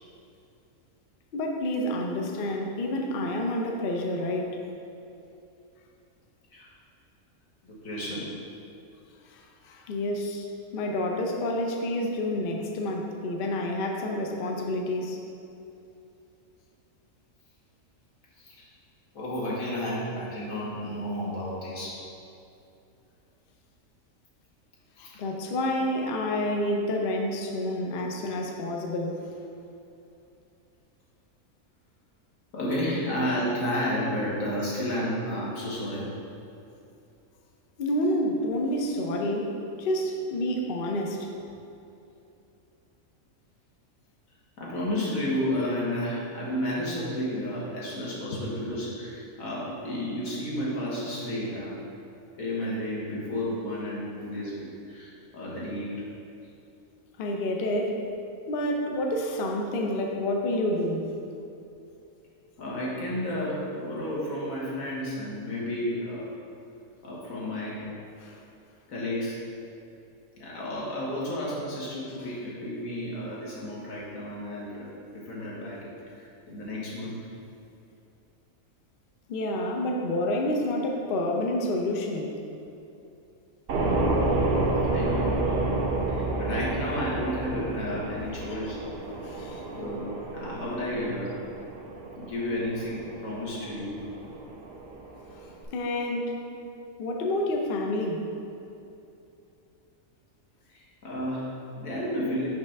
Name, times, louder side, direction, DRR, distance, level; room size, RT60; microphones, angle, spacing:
voice 1, 1.3-4.6 9.3-10.5 10.7-15.2 25.0-29.3 37.8-39.5 39.8-41.3 48.3-48.4 57.2-58.0 58.5-61.2 68.2-68.4 79.3-82.4 89.2-89.6 95.4-96.4 97.0-98.2, left 1 dB, 55° left, 1 dB, 0.7 m, -29 dB
voice 2, 7.6-8.4 18.4-18.6 19.1-22.0 25.0-25.2 32.5-36.1 38.9-39.1 44.6-51.9 52.4-55.9 62.6-66.3 67.0-67.8 68.9-69.5 70.4-77.2 84.9-85.8 86.1-88.8 89.8-90.1 90.3-91.3 92.1-94.0 96.1-96.6 100.7-102.5, left 1 dB, 75° left, -6 dB, 1.7 m, -32 dB
sound 1, 83.7-95.6, right 2 dB, 55° right, 0.8 m, -30 dB
5.7 x 3.2 x 5.7 m, 2.7 s
omnidirectional pair, 1.4 m